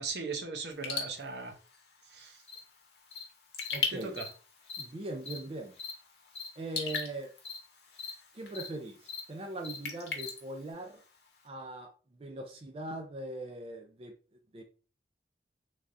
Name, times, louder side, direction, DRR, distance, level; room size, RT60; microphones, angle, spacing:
voice 1, 0.0-1.5 2.1-2.4 3.9-4.3, right 4 dB, 75° right, 0.6 m, -38 dB
Raindrop / Drip, 0.7-11.5, left 6 dB, 70° left, 0.8 m, -42 dB
Cricket, 2.5-2.6 3.1-3.2 3.6-3.7 4.2-4.3 4.6-4.8 5.2-5.4 5.8-5.9 6.3-6.5 6.8-7.0 7.4-7.6 7.9-8.1 8.5-8.7 9.0-9.2 9.6-9.8 10.2-10.3, left 5 dB, 35° left, 0.6 m, -41 dB
voice 2, 3.7-4.2 4.8-5.8 6.6-7.3 8.3-11.0 11.4-11.9 12.2-14.1 14.5-14.6, right 1 dB, 30° right, 0.4 m, -40 dB
3.3 x 2.4 x 2.5 m
head